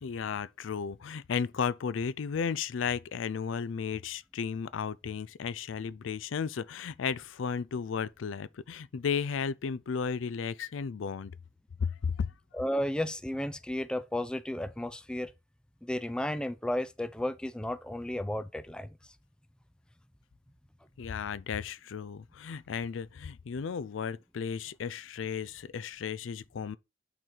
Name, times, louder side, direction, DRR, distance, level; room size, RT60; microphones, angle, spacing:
voice 1, 0.0-11.3 11.8-12.3 21.0-26.8, left 6 dB, 90° left, 0.4 m, -34 dB
voice 2, 12.5-15.3 15.8-18.9, left 1 dB, 5° left, 0.4 m, -33 dB
9.1 x 4.0 x 4.4 m
head